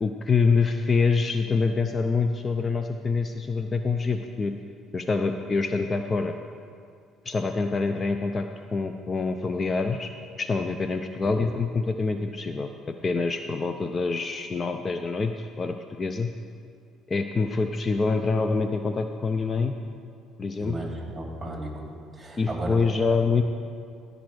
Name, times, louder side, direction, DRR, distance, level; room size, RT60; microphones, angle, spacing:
voice 1, 0.0-4.5 4.9-6.3 7.2-10.1 10.4-12.7 13.0-16.3 17.1-19.7 20.4-20.8 22.4-23.4, left 4 dB, 35° left, 7 dB, 0.5 m, -26 dB
voice 2, 20.6-22.9, right 1 dB, 15° right, 0 dB, 2.7 m, -35 dB
15.0 x 5.3 x 6.3 m, 2.3 s
supercardioid pair, 80°, 0 cm